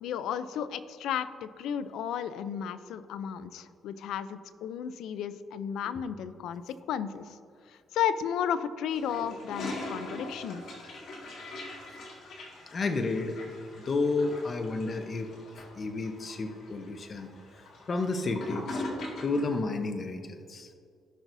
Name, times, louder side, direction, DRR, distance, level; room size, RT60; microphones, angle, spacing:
voice 1, 0.0-7.4 7.9-10.6, left 8 dB, 85° left, 13 dB, 0.5 m, -33 dB
Toilet flush, 8.9-19.6, left 2 dB, 65° left, 1.9 m, -42 dB
voice 2, 12.7-13.4 13.7-17.3 17.6-18.8 19.2-20.7, left 3 dB, 40° left, 6 dB, 0.9 m, -31 dB
16.0 x 6.1 x 2.7 m, 2.3 s
cardioid pair, 90°, 0 cm